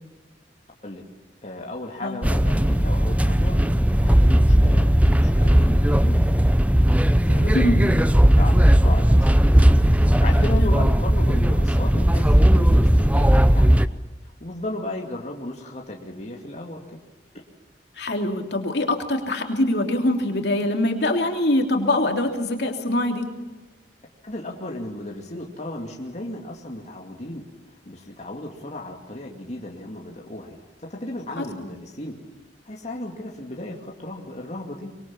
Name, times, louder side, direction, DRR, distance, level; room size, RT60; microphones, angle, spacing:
voice 1, 1.4-6.6 7.2-13.7 14.2-17.0 24.2-27.5 27.9-32.2 32.6-34.9, left 1 dB, 40° left, 0 dB, 2.4 m, -35 dB
sound 1, 2.2-13.9, equal, 10° right, 0.7 m, -17 dB
voice 2, 18.0-23.3 31.4-31.5, left 1 dB, 65° left, 3 dB, 3.2 m, -23 dB
24.5 x 23.0 x 7.3 m, 1.1 s
head